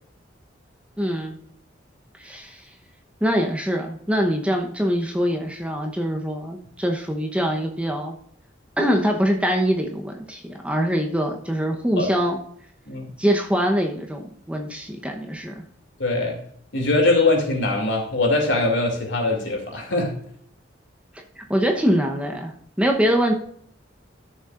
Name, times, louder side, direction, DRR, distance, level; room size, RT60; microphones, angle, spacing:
voice 1, 1.0-1.4 2.2-2.6 3.2-8.1 8.8-12.4 13.2-15.6 21.4-22.5 22.8-23.3, equal, 5° right, 2 dB, 0.9 m, -23 dB
voice 2, 16.0-16.4 16.7-20.1, left 2 dB, 75° left, 1 dB, 2.7 m, -22 dB
13.0 x 7.0 x 2.5 m, 0.63 s
head